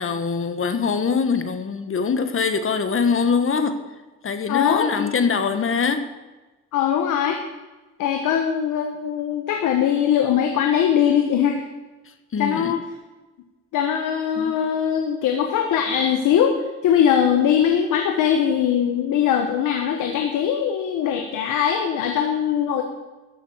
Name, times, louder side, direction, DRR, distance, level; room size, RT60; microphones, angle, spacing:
voice 1, 0.0-3.8 4.2-6.0 12.3-12.7 14.3-14.5, left 5 dB, 45° left, 9 dB, 1.5 m, -23 dB
voice 2, 4.5-5.1 6.7-7.4 8.0-11.6 12.4-12.8 13.7-16.6 16.8-22.8, left 8 dB, 90° left, 4 dB, 1.3 m, -21 dB
13.5 x 7.1 x 7.4 m, 1.2 s
cardioid pair, 90°, 30 cm